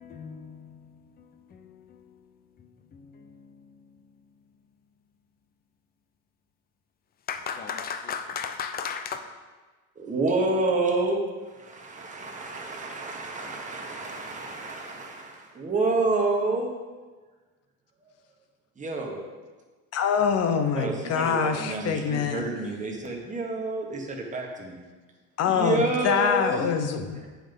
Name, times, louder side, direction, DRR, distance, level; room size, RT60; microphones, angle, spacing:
voice 1, 0.0-4.1 7.3-9.2, left 6 dB, 30° left, 0.6 m, -37 dB
voice 2, 9.9-11.2 11.5-16.8 18.8-19.2 20.7-24.8 25.5-26.7, right 2 dB, 20° right, 1.6 m, -29 dB
voice 3, 19.9-22.4 25.4-27.3, left 6 dB, 50° left, 0.9 m, -25 dB
8.8 x 5.9 x 5.4 m
cardioid pair, 135°, 33 cm